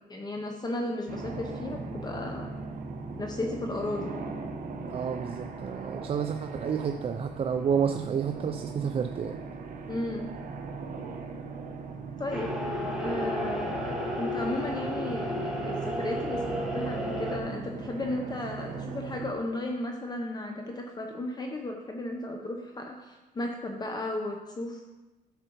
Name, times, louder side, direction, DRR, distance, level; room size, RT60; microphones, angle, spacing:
voice 1, 0.1-2.5 3.2-4.1 6.0-6.1 9.9-10.3 12.2-12.6 13.0-24.8, left 1 dB, 25° left, 2 dB, 0.8 m, -34 dB
sound 1, 1.1-19.3, right 4 dB, 50° right, 1.0 m, -39 dB
voice 2, 4.9-9.4, right 7 dB, 35° right, 6 dB, 0.4 m, -30 dB
sound 2, 12.3-17.4, equal, 5° right, 1.6 m, -32 dB
10.0 x 6.6 x 3.0 m, 1.1 s
cardioid pair, 110°, 17 cm